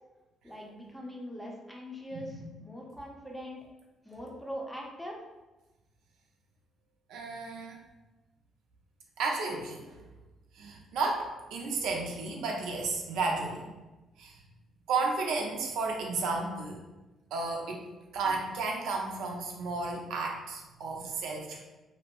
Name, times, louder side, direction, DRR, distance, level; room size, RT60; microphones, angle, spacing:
voice 1, 0.4-3.6 4.0-5.2, equal, 5° left, -2 dB, 0.6 m, -42 dB
voice 2, 2.1-2.5 7.1-7.8 9.2-10.0 10.6-13.6 14.2-14.3 14.9-16.8 17.3-17.9 18.1-21.6, right 3 dB, 85° right, 0 dB, 0.4 m, -33 dB
2.6 x 2.0 x 2.9 m, 1.1 s
cardioid pair, 90°, 0 cm